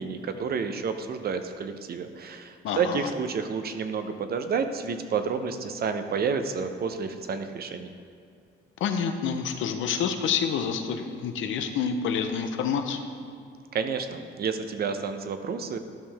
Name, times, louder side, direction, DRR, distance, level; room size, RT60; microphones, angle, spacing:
voice 1, 0.0-7.9 13.7-15.8, right 5 dB, 50° right, 8 dB, 0.7 m, -30 dB
voice 2, 2.6-3.1 8.8-13.0, left 6 dB, 80° left, 7 dB, 0.7 m, -28 dB
12.0 x 5.4 x 3.4 m, 2.4 s
cardioid pair, 90°, 20 cm